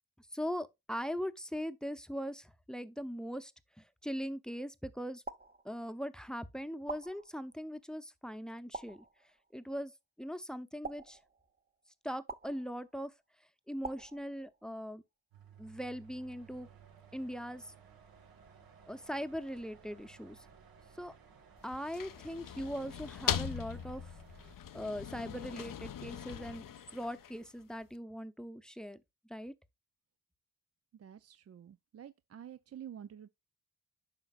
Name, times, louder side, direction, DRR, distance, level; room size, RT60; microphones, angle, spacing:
voice 1, 0.3-3.5 4.0-5.2 5.6-9.0 9.5-9.9 10.2-11.2 12.0-13.1 13.7-15.0 15.6-16.7 17.1-17.7 18.9-20.4 21.0-21.1 21.6-24.1 24.7-26.7 26.9-29.0 29.3-29.5, equal, ahead, 0.7 m, -40 dB
sound 1, 5.3-6.2 6.9-7.8 8.7-9.6 10.8-11.7 12.3-13.1 13.8-14.8, right 3 dB, 25° right, 0.9 m, -47 dB
sound 2, 15.3-24.6, right 6 dB, 70° right, 1.4 m, -58 dB
sound 3, 21.6-27.6, left 9 dB, 60° left, 0.7 m, -40 dB
voice 2, 31.0-33.3, right 9 dB, 45° right, 0.5 m, -49 dB
9.7 x 5.7 x 2.4 m
supercardioid pair, 45°, 36 cm